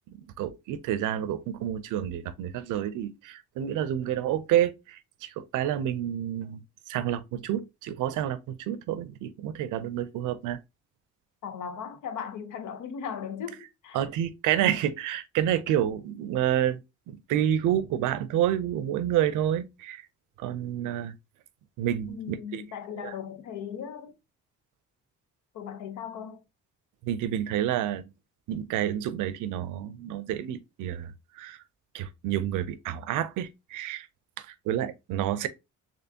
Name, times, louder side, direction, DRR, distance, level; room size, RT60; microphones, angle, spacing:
voice 1, 0.1-6.6 6.9-10.6 13.9-20.1 20.4-21.1 21.8-22.6 22.9-23.1 27.0-28.1 28.5-31.6 31.9-34.1 34.4-35.5, right 11 dB, 90° right, 0.5 m, -29 dB
voice 2, 11.4-14.0 22.1-24.1 25.5-26.4, left 7 dB, 80° left, 0.8 m, -37 dB
4.3 x 2.9 x 2.7 m
cardioid pair, 90°, 30 cm